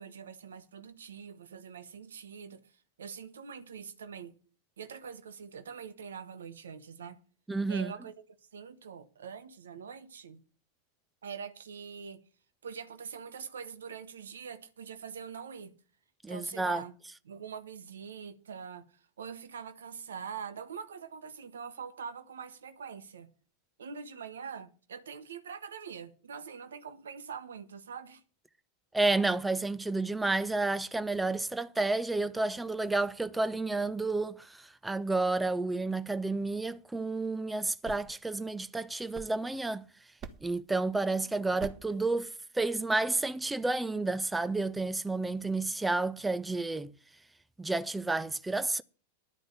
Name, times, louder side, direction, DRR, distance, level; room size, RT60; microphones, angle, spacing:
voice 1, 0.0-2.7 3.0-4.3 4.8-7.2 7.7-8.1 8.5-10.4 11.2-12.2 12.6-15.7 16.3-16.9 17.2-23.3 23.8-28.2 41.2-41.6, right 6 dB, 65° right, 1.3 m, -44 dB
voice 2, 7.5-7.9 16.2-16.8 28.9-39.9 40.4-46.9 47.6-48.8, right 3 dB, 5° right, 0.6 m, -31 dB
sound 1, 37.8-39.8 40.2-40.7 41.6-42.0, right 6 dB, 30° right, 1.0 m, -47 dB
11.0 x 5.2 x 8.5 m
figure-of-eight pair, 90°, 0 cm